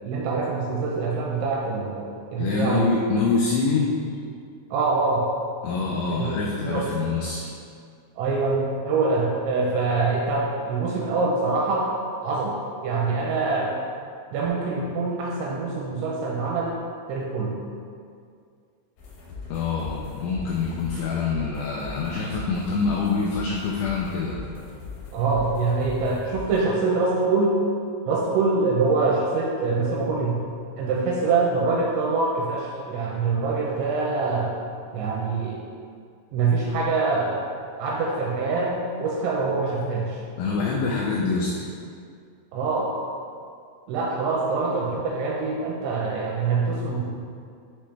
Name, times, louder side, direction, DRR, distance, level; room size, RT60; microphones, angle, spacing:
voice 1, 0.0-2.9 4.7-5.3 6.1-6.4 6.6-6.9 8.2-11.9 12.2-13.8 14.3-16.8 17.1-17.6 25.1-27.6 28.1-30.4 30.8-34.5 34.9-35.6 36.3-37.4 37.8-40.2 42.5-43.0 43.9-47.0, right 3 dB, 85° right, -2 dB, 2.6 m, -24 dB
voice 2, 2.4-3.9 5.6-7.5 19.5-24.4 40.4-41.7, left 4 dB, 90° left, -3 dB, 2.5 m, -25 dB
sound 1, 19.0-26.6, left 4 dB, 70° left, 2.3 m, -40 dB
9.9 x 3.4 x 3.2 m, 2.3 s
omnidirectional pair, 5.7 m